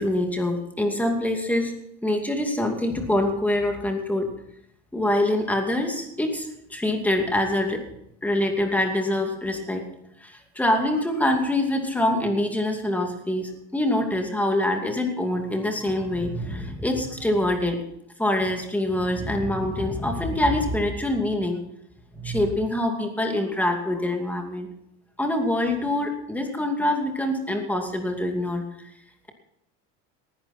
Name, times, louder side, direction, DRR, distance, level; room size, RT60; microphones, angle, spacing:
voice 1, 0.0-1.7 2.0-4.3 4.9-7.8 8.2-9.8 10.2-17.8 18.2-21.6 22.1-24.7 25.2-28.6, left 1 dB, 5° left, 3 dB, 2.5 m, -25 dB
19.0 x 11.5 x 4.4 m, 0.78 s
cardioid pair, 140°, 29 cm